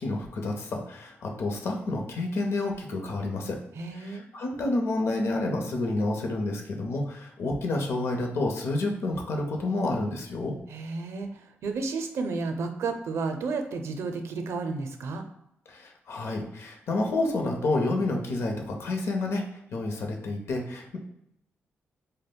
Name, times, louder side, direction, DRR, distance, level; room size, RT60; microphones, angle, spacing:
voice 1, 0.0-3.6 3.9-10.5 15.7-19.4 19.7-21.0, left 2 dB, 70° left, 2 dB, 0.7 m, -29 dB
voice 2, 3.8-4.3 10.7-15.2, right 4 dB, 75° right, 6 dB, 0.4 m, -32 dB
5.0 x 2.1 x 2.2 m, 0.78 s
wide cardioid pair, 125°, 5 cm